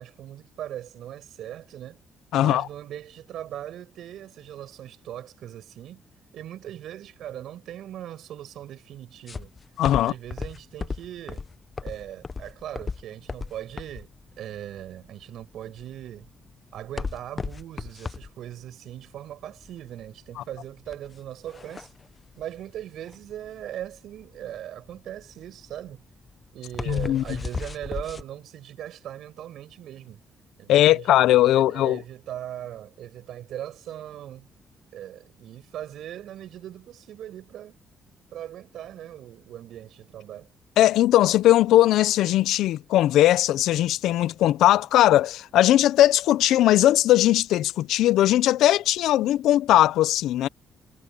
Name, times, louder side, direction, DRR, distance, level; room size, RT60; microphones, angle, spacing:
voice 1, 0.0-2.0 2.4-6.0 6.3-9.5 10.0-11.4 11.8-14.1 14.4-16.3 16.7-21.9 22.4-26.0 26.5-30.2 30.6-31.1 31.5-34.5 34.9-37.8 38.3-40.5, right 11 dB, 75° right, 6.7 m, -39 dB
voice 2, 2.3-2.7 9.8-10.1 26.9-27.2 30.7-32.0 40.8-50.5, left 13 dB, 85° left, 0.6 m, -19 dB
sound 1, 9.3-28.2, left 4 dB, 30° left, 0.9 m, -36 dB
cardioid pair, 90°, 0 cm